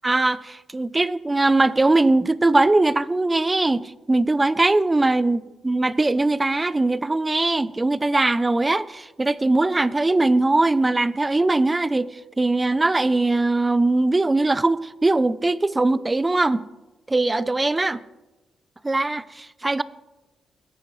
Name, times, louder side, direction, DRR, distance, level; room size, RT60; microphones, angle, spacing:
voice 1, 0.0-12.1 12.4-16.6 17.1-18.0 18.8-19.8, right 2 dB, 20° right, 17 dB, 0.5 m, -21 dB
20.5 x 11.0 x 3.2 m, 1.1 s
cardioid pair, 90°, 0 cm